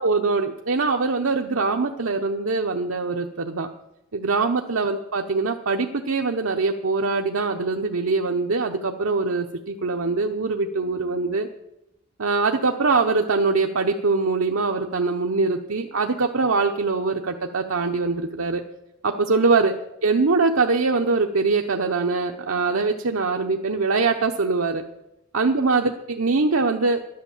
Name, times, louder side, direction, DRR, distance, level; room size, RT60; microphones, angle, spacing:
voice 1, 0.0-3.7 4.1-11.5 12.2-18.6 19.0-24.8 25.3-27.0, right 4 dB, 90° right, 3 dB, 0.9 m, -23 dB
11.5 x 11.0 x 7.3 m, 0.88 s
head